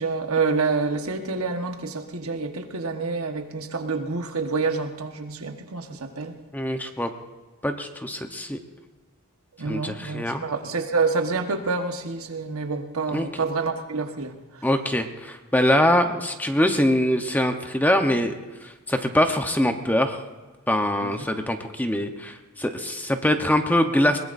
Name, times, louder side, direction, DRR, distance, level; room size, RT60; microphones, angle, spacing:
voice 1, 0.0-6.3 9.6-14.3 21.0-21.1, right 4 dB, 75° right, 5 dB, 1.3 m, -27 dB
voice 2, 6.5-7.1 7.6-8.6 9.6-10.4 13.1-13.3 14.6-18.3 18.6-20.2 20.7-24.2, left 1 dB, 10° left, 6 dB, 0.9 m, -23 dB
22.0 x 20.0 x 2.6 m, 1.3 s
head